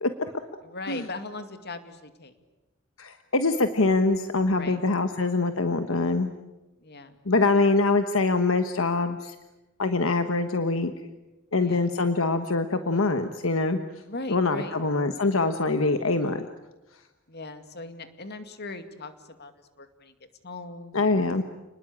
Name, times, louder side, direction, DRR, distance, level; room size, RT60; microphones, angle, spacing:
voice 1, 0.6-2.4 4.5-4.8 6.8-7.2 11.5-11.9 14.1-14.8 17.3-19.5 19.8-20.1 20.4-21.3, left 2 dB, 55° left, 9 dB, 2.3 m, -39 dB
voice 2, 3.0-6.3 7.2-9.4 9.8-10.9 11.5-13.8 14.3-16.4 20.9-21.4, left 3 dB, 75° left, 8 dB, 1.3 m, -24 dB
29.5 x 20.5 x 8.7 m, 1.1 s
head